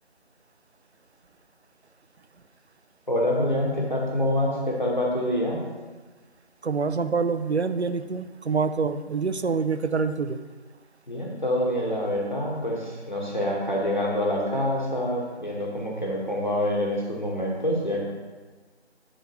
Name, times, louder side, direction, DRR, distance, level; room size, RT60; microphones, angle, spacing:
voice 1, 3.1-5.6 11.1-18.0, left 1 dB, 45° left, -3 dB, 1.5 m, -26 dB
voice 2, 6.6-10.4, right 5 dB, 70° right, 11 dB, 0.5 m, -26 dB
10.5 x 5.1 x 3.0 m, 1.3 s
figure-of-eight pair, 175°, 34 cm